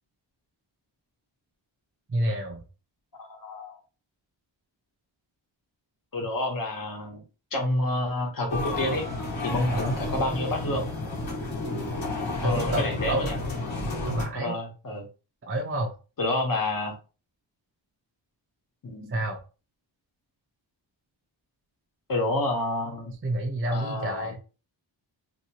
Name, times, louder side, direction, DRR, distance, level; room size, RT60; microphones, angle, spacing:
voice 1, 2.1-2.6 9.7-10.0 12.4-13.3 14.1-14.6 15.5-15.9 19.1-19.4 23.2-24.4, right 1 dB, 30° right, 1 dB, 0.6 m, -29 dB
voice 2, 3.2-3.8 6.1-7.2 7.5-9.0 9.4-10.9 12.4-13.4 14.3-15.1 16.2-16.9 18.8-19.2 22.1-23.1 23.7-24.4, left 1 dB, 45° left, 1 dB, 1.2 m, -29 dB
sound 1, 8.5-14.3, left 2 dB, 85° left, 1.3 m, -31 dB
2.9 x 2.9 x 2.8 m, 0.33 s
wide cardioid pair, 120°, 46 cm